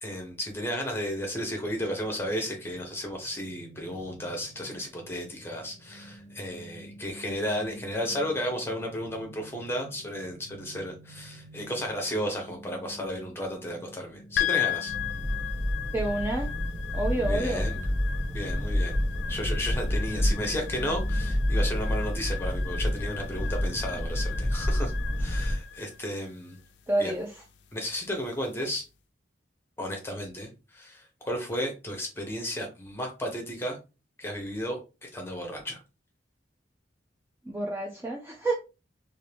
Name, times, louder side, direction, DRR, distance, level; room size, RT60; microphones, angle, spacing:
voice 1, 0.0-14.9 17.1-17.8 18.3-19.0 19.3-24.9 25.2-26.6 27.0-27.2 27.7-28.8 29.8-33.8 34.2-35.8, equal, 10° left, 2 dB, 0.8 m, -33 dB
sound 1, 1.6-21.3, right 2 dB, 35° right, 1.1 m, -49 dB
sound 2, 14.4-28.7, left 11 dB, 60° left, 0.4 m, -37 dB
sound 3, 14.9-25.6, equal, 70° right, 1.1 m, -29 dB
voice 2, 15.9-16.5 16.9-17.7 26.9-27.3 37.5-38.5, right 2 dB, 10° right, -1 dB, 0.3 m, -29 dB
2.7 x 2.5 x 3.3 m, 0.30 s
head